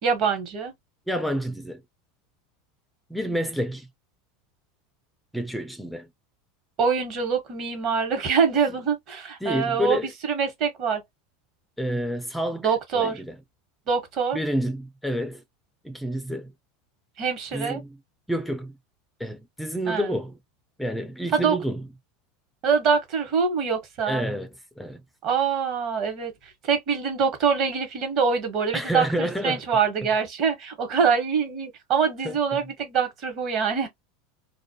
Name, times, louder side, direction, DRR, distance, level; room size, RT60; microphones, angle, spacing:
voice 1, 0.0-0.7 6.8-11.0 12.6-13.2 13.9-14.4 17.2-17.8 19.9-20.2 21.3-21.6 22.6-24.2 25.2-33.9, right 6 dB, 50° right, 1.2 m, -24 dB
voice 2, 1.1-1.8 3.1-3.9 5.3-6.1 9.4-10.1 11.8-13.4 14.3-15.4 15.8-16.5 17.5-18.0 18.3-18.8 19.2-20.4 20.8-21.8 24.1-24.5 24.8-25.0 28.7-29.6 32.2-32.6, equal, ahead, 0.4 m, -29 dB
2.4 x 2.1 x 2.6 m
hypercardioid pair, 105°, 0 cm